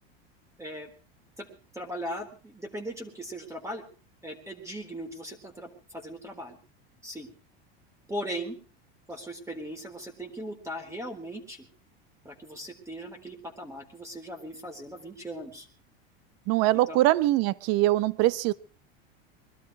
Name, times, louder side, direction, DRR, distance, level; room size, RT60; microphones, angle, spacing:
voice 1, 0.6-0.9 1.4-1.5 1.7-3.8 4.2-6.6 7.0-7.3 8.1-8.6 9.1-11.6 12.2-15.7 16.7-17.0, equal, 10° right, 4 dB, 4.0 m, -38 dB
voice 2, 16.5-18.5, right 16 dB, 55° right, 19 dB, 1.0 m, -23 dB
22.5 x 12.5 x 4.8 m, 0.36 s
supercardioid pair, 125°, 31 cm